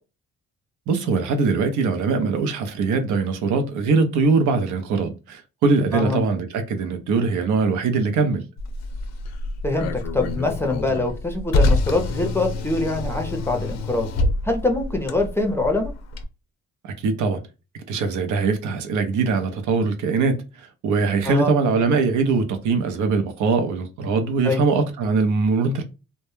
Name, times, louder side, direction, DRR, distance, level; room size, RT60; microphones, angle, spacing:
voice 1, 0.9-8.4 16.8-17.4 17.9-25.8, right 4 dB, 75° right, 0.6 m, -22 dB
Car, 8.6-16.2, left 2 dB, 60° left, 0.5 m, -26 dB
voice 2, 9.6-14.1 14.4-15.9 21.2-21.5 24.4-24.6, left 2 dB, 10° left, 0.5 m, -24 dB
2.2 x 2.1 x 3.0 m
cardioid pair, 90°, 30 cm